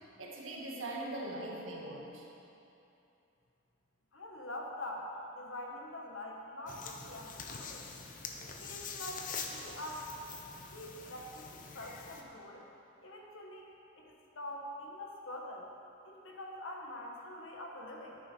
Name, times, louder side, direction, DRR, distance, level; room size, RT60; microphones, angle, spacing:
voice 1, 0.2-2.3, right 1 dB, 80° right, -1 dB, 1.6 m, -41 dB
voice 2, 4.1-7.8 8.4-10.1 10.7-12.7 13.0-13.7 14.0-15.7 16.0-18.2, left 1 dB, 85° left, 0 dB, 1.5 m, -45 dB
sound 1, 6.7-12.2, left 5 dB, 40° left, 0.7 m, -45 dB
10.5 x 9.5 x 4.5 m, 2.8 s
head